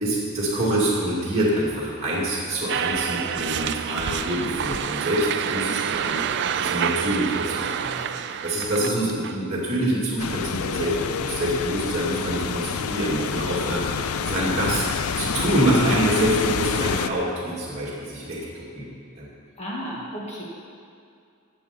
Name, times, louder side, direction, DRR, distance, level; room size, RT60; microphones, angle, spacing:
voice 1, 0.0-18.9 19.2-19.3, right 1 dB, 30° right, -8 dB, 2.5 m, -26 dB
sound 1, 2.7-9.4, right 8 dB, 55° right, 0.4 m, -27 dB
voice 2, 5.6-6.0 8.8-8.9 19.6-20.4, equal, 30° left, -5 dB, 1.9 m, -34 dB
sound 2, 10.2-17.1, left 7 dB, 85° left, 0.4 m, -28 dB
15.0 x 8.1 x 4.4 m, 2.4 s
head